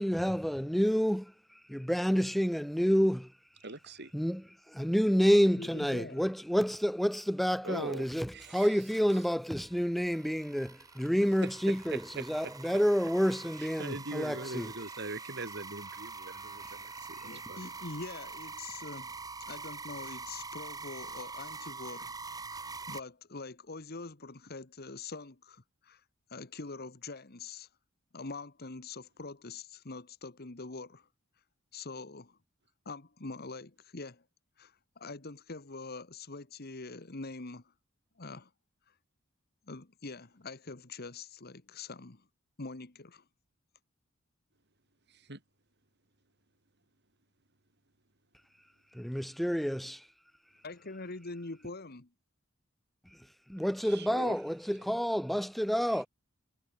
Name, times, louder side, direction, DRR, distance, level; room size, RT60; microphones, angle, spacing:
voice 1, 0.0-1.3 1.7-3.3 4.1-4.4 4.7-14.7 48.9-50.0 53.5-56.1, equal, ahead, 0.3 m, -29 dB
voice 2, 3.6-4.1 7.6-8.1 8.3-8.7 11.4-12.8 13.6-17.7 45.1-45.4 53.8-54.4 55.9-56.0, right 2 dB, 55° right, 6.1 m, -42 dB
voice 3, 5.5-6.3 17.2-19.2 19.5-26.0 26.3-27.7 28.1-31.1 31.7-32.4 32.8-34.2 34.6-37.6 38.2-38.5 39.7-42.3 42.6-43.2 50.6-52.1, left 3 dB, 50° left, 1.5 m, -44 dB
sound 1, 9.6-23.0, right 4 dB, 20° right, 1.3 m, -45 dB
head